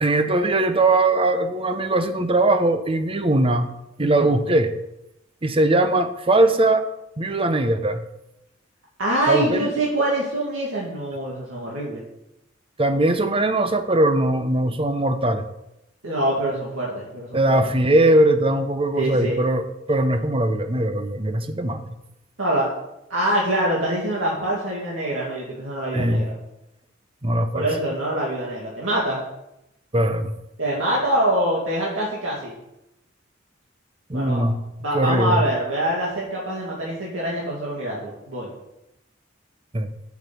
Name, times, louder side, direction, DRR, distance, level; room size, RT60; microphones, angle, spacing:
voice 1, 0.0-3.7 4.0-4.7 5.4-6.8 7.2-8.0 9.3-9.7 12.8-15.4 17.3-21.8 25.9-26.2 27.2-27.7 29.9-30.3 34.1-34.6 34.9-35.4 39.7-39.9, right 1 dB, 30° right, 9 dB, 0.9 m, -20 dB
voice 2, 9.0-12.0 16.0-17.6 18.9-19.4 22.4-22.7 23.1-26.3 27.5-29.2 30.6-32.5 34.1-34.4 34.8-38.5, right 1 dB, 85° right, -4 dB, 2.4 m, -24 dB
7.6 x 7.4 x 8.4 m, 0.88 s
head